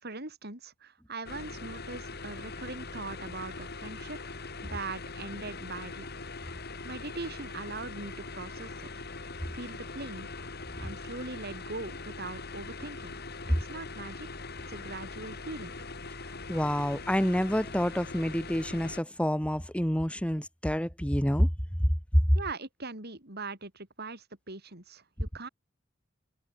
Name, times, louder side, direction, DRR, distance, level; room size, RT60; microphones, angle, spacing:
voice 1, 0.0-4.2 4.6-6.1 6.8-8.9 9.5-10.3 10.8-13.2 13.6-14.3 14.7-15.7 22.3-25.5, right 3 dB, 55° right, 7.1 m, -41 dB
sound 1, 1.3-19.0, left 3 dB, 55° left, 4.1 m, -42 dB
voice 2, 16.5-21.5 22.1-22.2, equal, 5° left, 3.1 m, -27 dB
head